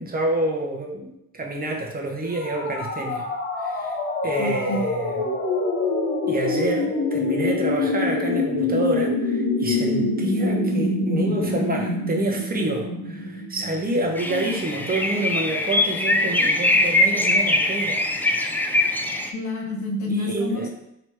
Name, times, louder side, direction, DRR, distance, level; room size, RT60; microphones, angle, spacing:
voice 1, 0.0-3.3 3.6-4.0 4.2-5.4 6.3-18.1 20.1-20.7, right 1 dB, 30° right, 0 dB, 0.8 m, -28 dB
sound 1, 2.3-14.1, left 2 dB, 40° left, 0.9 m, -25 dB
voice 2, 4.4-4.8 14.2-14.6 19.3-20.7, left 2 dB, 70° left, -1 dB, 1.2 m, -28 dB
sound 2, 14.2-19.3, left 1 dB, 5° left, 0.3 m, -22 dB
3.0 x 2.9 x 4.5 m, 0.79 s
cardioid pair, 90°, 30 cm